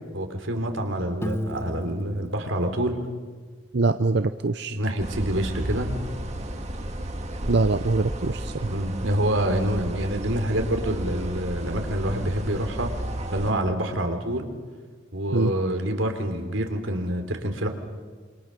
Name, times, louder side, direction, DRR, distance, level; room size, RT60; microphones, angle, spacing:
voice 1, 0.1-3.0 4.7-6.0 8.7-12.9 13.3-14.5 15.1-17.7, right 1 dB, 85° right, 6 dB, 3.3 m, -27 dB
Piano, 1.2-4.0, equal, 15° left, 1.0 m, -37 dB
voice 2, 3.7-4.8 7.5-8.7 15.3-15.5, right 3 dB, 60° right, 10 dB, 0.7 m, -23 dB
sound 1, 5.0-13.5, right 1 dB, 35° right, 2.1 m, -33 dB
28.0 x 26.0 x 6.7 m, 1.5 s
head